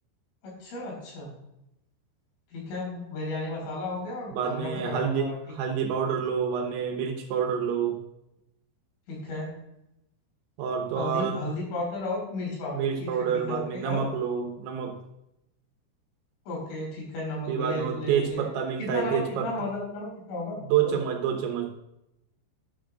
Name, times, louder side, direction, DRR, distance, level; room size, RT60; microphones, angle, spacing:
voice 1, 0.4-1.3 2.5-5.4 5.7-5.8 9.1-9.5 11.0-14.0 16.5-18.4 18.8-21.0, left 1 dB, 70° left, -2 dB, 7.2 m, -34 dB
voice 2, 4.3-8.0 10.6-11.4 12.7-15.0 17.5-19.5 20.7-21.7, right 7 dB, 75° right, 3 dB, 3.1 m, -28 dB
13.5 x 11.5 x 2.5 m, 0.85 s
omnidirectional pair, 5.9 m